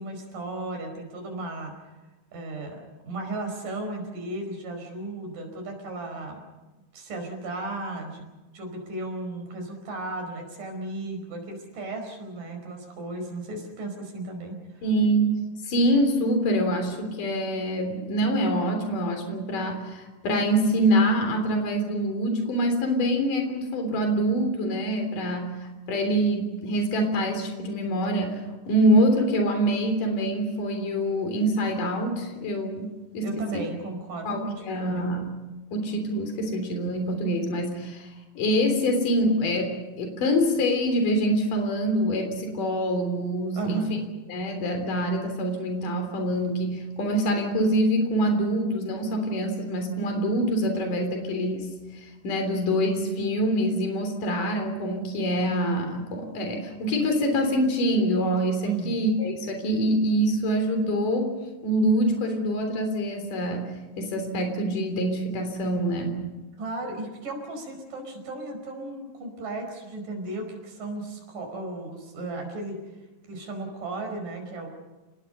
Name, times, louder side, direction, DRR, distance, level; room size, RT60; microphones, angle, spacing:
voice 1, 0.0-1.7 2.3-6.4 6.9-14.8 33.2-35.2 43.5-44.0 58.6-58.9 66.6-72.8 73.3-74.7, right 2 dB, 75° right, 4 dB, 6.6 m, -35 dB
voice 2, 14.8-15.3 15.6-28.4 28.7-33.6 34.2-35.3 35.7-43.9 44.3-61.3 61.6-66.2, equal, 70° left, 5 dB, 5.1 m, -25 dB
29.5 x 19.0 x 6.8 m, 1.1 s
omnidirectional pair, 3.9 m